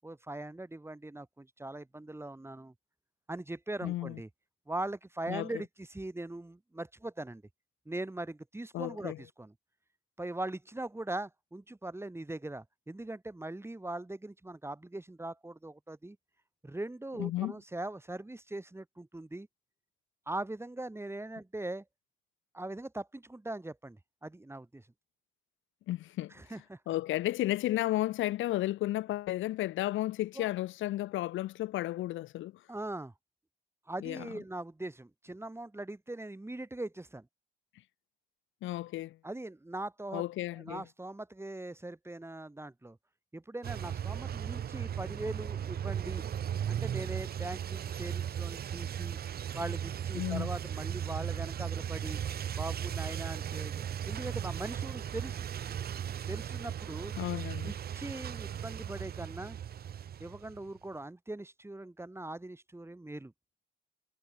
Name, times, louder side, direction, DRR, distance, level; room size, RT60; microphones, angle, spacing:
voice 1, 0.0-2.7 3.3-4.3 4.7-7.4 7.9-9.5 10.2-16.2 16.6-19.5 20.3-21.8 22.5-24.9 26.3-26.8 30.4-30.5 32.7-33.1 33.9-37.3 39.2-40.2 40.5-43.0 43.3-46.3 46.7-49.2 49.5-52.2 52.5-55.5 56.3-57.1 57.6-59.6 60.2-63.3, right 2 dB, 10° right, 8.0 m, -41 dB
voice 2, 3.8-4.2 5.3-5.5 8.7-9.2 17.2-17.5 25.9-26.3 26.9-32.5 34.0-34.3 38.6-39.2 40.1-40.8 50.1-50.5 57.2-57.7, left 15 dB, 80° left, 0.7 m, -33 dB
sound 1, 43.6-60.7, right 9 dB, 50° right, 0.9 m, -37 dB
cardioid pair, 90°, 20 cm